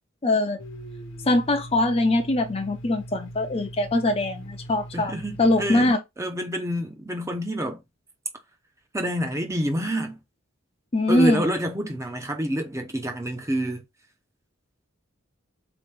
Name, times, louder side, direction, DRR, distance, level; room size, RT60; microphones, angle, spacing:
voice 1, 0.2-0.6 1.3-5.1 5.4-6.0 10.9-11.4, left 2 dB, 25° left, 0.5 m, -22 dB
Domestic sounds home sounds, 0.6-5.9, right 1 dB, 60° left, 0.8 m, -40 dB
voice 2, 4.9-5.9 6.2-7.8 8.9-10.2 11.1-13.8, equal, 15° right, 0.6 m, -28 dB
4.2 x 3.0 x 3.3 m
head